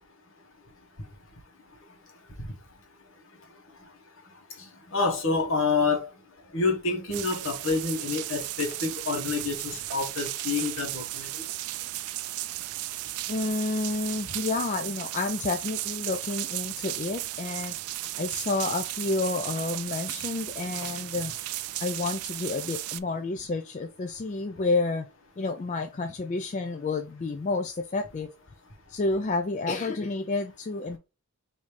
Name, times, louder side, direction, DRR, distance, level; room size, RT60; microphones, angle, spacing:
voice 1, 4.6-6.1 6.5-11.4, left 4 dB, 60° left, 1.3 m, -28 dB
sound 1, 7.1-23.0, right 16 dB, 80° right, 0.3 m, -35 dB
voice 2, 13.3-17.8 18.2-21.3 21.8-25.1 25.4-28.3 28.9-31.0, left 3 dB, 35° left, 0.3 m, -30 dB
5.0 x 2.7 x 3.2 m
head